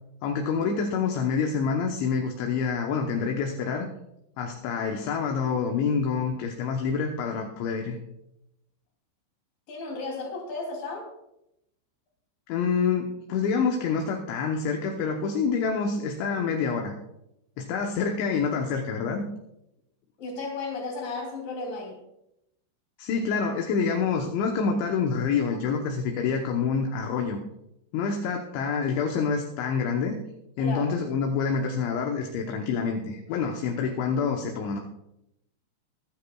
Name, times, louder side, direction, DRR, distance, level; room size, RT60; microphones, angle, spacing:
voice 1, 0.2-3.9 4.4-8.0 12.5-16.9 17.6-19.2 23.0-27.4 27.9-30.2 30.6-34.8, left 5 dB, 75° left, 2 dB, 3.1 m, -27 dB
voice 2, 9.7-11.1 20.2-22.0 30.6-31.0, left 3 dB, 50° left, 0 dB, 4.2 m, -34 dB
24.0 x 10.0 x 2.3 m, 0.83 s
omnidirectional pair, 5.7 m